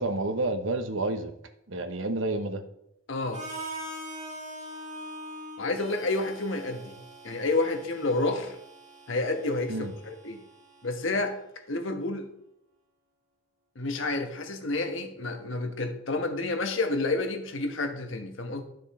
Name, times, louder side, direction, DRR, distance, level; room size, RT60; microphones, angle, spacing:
voice 1, 0.0-1.3 1.7-2.6 9.7-9.9, right 2 dB, 70° right, 1.0 m, -29 dB
voice 2, 3.1-3.4 5.6-6.9 7.2-8.6 9.1-10.4 10.8-11.4 11.7-12.3 13.7-18.6, left 2 dB, 65° left, 1.3 m, -29 dB
Harmonica, 3.3-11.2, right 1 dB, 35° right, 2.6 m, -43 dB
11.5 x 6.7 x 4.3 m
head